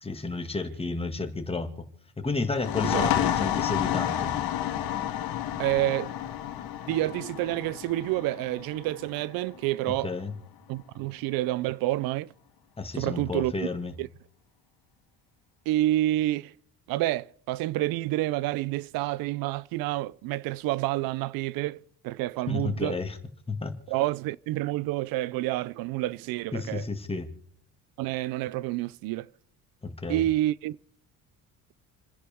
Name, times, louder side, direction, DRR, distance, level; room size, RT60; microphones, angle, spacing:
voice 1, 0.0-1.9 2.2-4.3 9.9-10.3 12.8-14.0 22.5-23.2 23.5-23.7 26.5-27.3 29.8-30.2, left 3 dB, 15° left, 2.0 m, -32 dB
sound 1, 2.5-9.9, left 11 dB, 85° left, 1.7 m, -30 dB
voice 2, 5.6-6.1 6.9-10.1 10.7-12.3 13.0-13.5 14.0-14.1 15.7-16.5 16.9-23.0 23.9-26.9 28.0-29.3 30.1-30.8, right 16 dB, 85° right, 0.5 m, -28 dB
29.5 x 10.5 x 3.6 m
cardioid pair, 105°, 35 cm